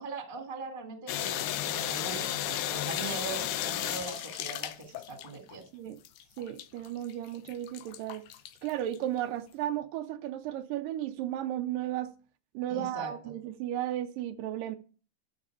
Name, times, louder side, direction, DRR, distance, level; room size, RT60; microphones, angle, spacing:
voice 1, 0.0-5.6 12.7-13.3, right 3 dB, 20° right, 1.5 m, -41 dB
sound 1, 1.1-5.5 6.0-9.0, left 12 dB, 75° left, 2.1 m, -34 dB
voice 2, 6.4-8.2 8.6-12.1 12.5-14.8, right 12 dB, 80° right, 2.2 m, -34 dB
12.5 x 6.5 x 4.8 m
omnidirectional pair, 4.0 m